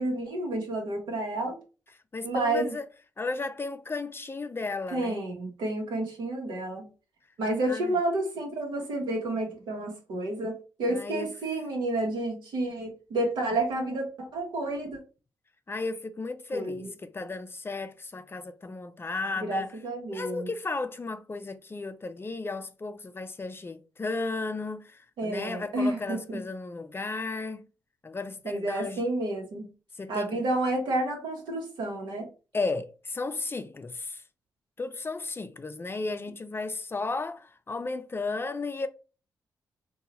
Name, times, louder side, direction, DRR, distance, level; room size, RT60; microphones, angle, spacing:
voice 1, 0.0-1.6 2.2-2.7 4.9-6.9 7.4-15.0 16.5-16.9 19.3-20.5 25.2-26.4 28.4-29.7 30.1-32.3, right 2 dB, 75° right, 0.9 m, -30 dB
voice 2, 2.1-2.9 3.2-5.2 7.6-8.0 10.9-11.3 15.7-19.7 20.1-27.6 28.0-29.0 30.0-30.4 32.5-34.2 34.8-38.9, left 3 dB, 30° left, 0.4 m, -34 dB
2.7 x 2.3 x 2.8 m
supercardioid pair, 45°, 8 cm